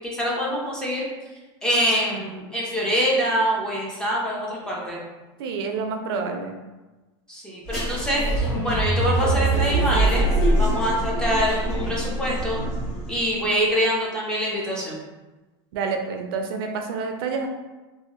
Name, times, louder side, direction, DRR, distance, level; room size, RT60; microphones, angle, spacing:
voice 1, 0.0-1.1 1.6-5.0 7.3-10.3 10.6-12.6 13.1-15.0, equal, 5° left, -4 dB, 0.4 m, -25 dB
voice 2, 5.4-6.6 15.7-17.5, right 4 dB, 70° right, 4 dB, 0.4 m, -28 dB
sound 1, 7.7-13.2, right 2 dB, 45° left, 1.3 m, -23 dB
2.7 x 2.4 x 2.8 m, 1.1 s
supercardioid pair, 175°, 13 cm